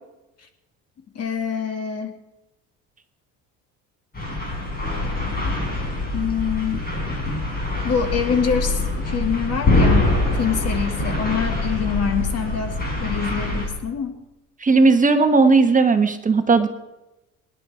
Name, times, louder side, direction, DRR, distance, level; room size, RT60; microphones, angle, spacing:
voice 1, 1.2-2.2 6.1-6.9 7.8-14.2, left 7 dB, 45° left, 6 dB, 2.2 m, -25 dB
sound 1, 4.1-13.7, left 2 dB, 25° left, 5.5 m, -24 dB
voice 2, 14.6-16.7, right 4 dB, 25° right, 7 dB, 1.1 m, -16 dB
24.5 x 10.5 x 4.9 m, 0.99 s
cardioid pair, 120°, 34 cm